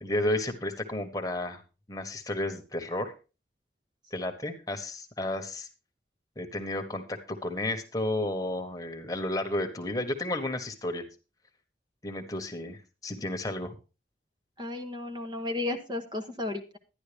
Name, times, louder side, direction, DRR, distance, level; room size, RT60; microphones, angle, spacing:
voice 1, 0.0-1.6 1.9-3.1 4.1-5.7 6.4-11.0 12.0-13.7, left 1 dB, 20° left, 5 dB, 1.3 m, -32 dB
voice 2, 14.6-16.8, left 2 dB, 25° right, 6 dB, 1.0 m, -34 dB
11.5 x 11.0 x 3.4 m, 0.30 s
head